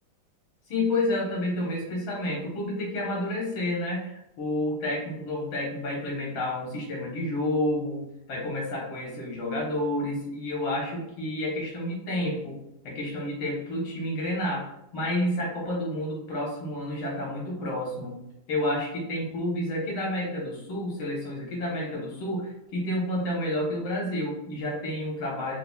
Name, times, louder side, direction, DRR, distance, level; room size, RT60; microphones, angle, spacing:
voice 1, 0.7-12.6 12.8-14.6 14.9-18.1 18.5-25.6, left 1 dB, 80° left, -3 dB, 2.1 m, -30 dB
5.8 x 3.1 x 2.3 m, 0.83 s
omnidirectional pair, 2.2 m